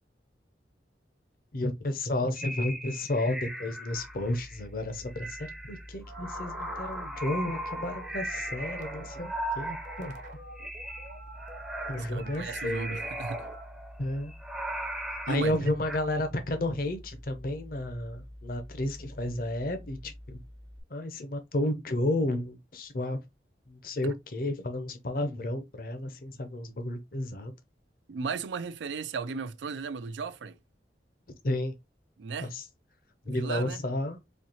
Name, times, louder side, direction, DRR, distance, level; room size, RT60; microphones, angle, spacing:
voice 1, 1.5-10.1 11.9-13.0 14.0-14.3 15.3-20.4 20.9-23.2 23.7-27.5 31.4-31.7 32.5-32.6 33.3-34.2, left 1 dB, 50° left, 0.6 m, -32 dB
sound 1, 2.4-4.6 5.1-10.3 10.6-16.0, right 1 dB, 5° right, 0.5 m, -38 dB
sound 2, 3.9-20.8, equal, 65° right, 1.0 m, -48 dB
sound 3, 6.1-13.6, right 3 dB, 45° right, 0.7 m, -47 dB
voice 2, 12.1-13.5 15.3-15.7 24.0-24.1 28.1-30.6 32.2-32.5 33.3-33.8, right 5 dB, 90° right, 0.4 m, -35 dB
4.3 x 2.7 x 2.8 m
head